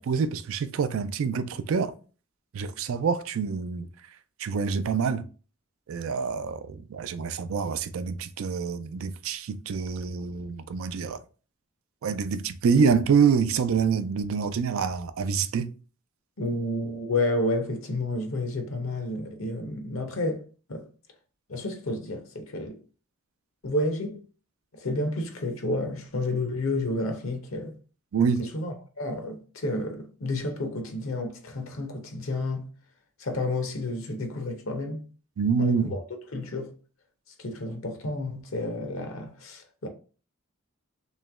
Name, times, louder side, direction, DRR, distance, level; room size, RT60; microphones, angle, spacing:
voice 1, 0.0-1.9 2.5-3.9 4.4-5.2 5.9-11.2 12.0-15.7 28.1-28.4 35.4-36.0, right 6 dB, 75° right, 0.4 m, -26 dB
voice 2, 16.4-20.9 21.5-22.8 23.6-24.2 24.7-27.8 28.4-32.7 33.2-35.0 35.6-36.0 36.3-36.7 37.4-39.9, left 2 dB, 70° left, 0.8 m, -30 dB
3.1 x 2.9 x 3.5 m
head